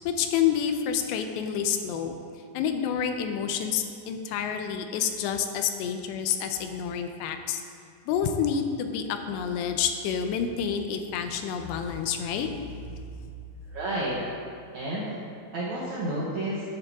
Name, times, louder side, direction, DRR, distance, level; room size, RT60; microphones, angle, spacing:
voice 1, 0.0-2.1 2.5-7.6 8.1-12.5, left 8 dB, 80° left, 6 dB, 2.8 m, -28 dB
voice 2, 13.7-14.2 14.7-15.2 15.5-16.6, right 1 dB, 75° right, -6 dB, 1.7 m, -30 dB
10.5 x 10.0 x 3.6 m, 2.3 s
omnidirectional pair, 5.0 m